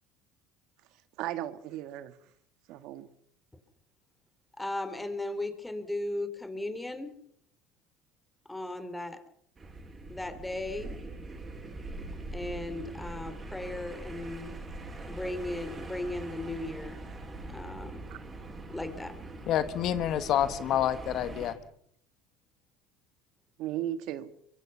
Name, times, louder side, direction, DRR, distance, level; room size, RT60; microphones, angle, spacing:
voice 1, 1.2-2.1 2.7-3.1 18.1-18.2 23.6-24.3, right 12 dB, 65° right, 12 dB, 1.7 m, -35 dB
voice 2, 4.6-7.1 8.5-9.2 10.1-10.9 12.3-14.6 15.0-17.0 17.5-18.0 18.7-19.1, left 2 dB, 10° left, 10 dB, 3.7 m, -36 dB
sound 1, 9.6-21.5, right 2 dB, 25° right, 6.7 m, -42 dB
voice 3, 19.5-21.5, left 11 dB, 55° left, 12 dB, 1.6 m, -28 dB
24.0 x 23.5 x 5.7 m, 0.68 s
supercardioid pair, 85°, 0 cm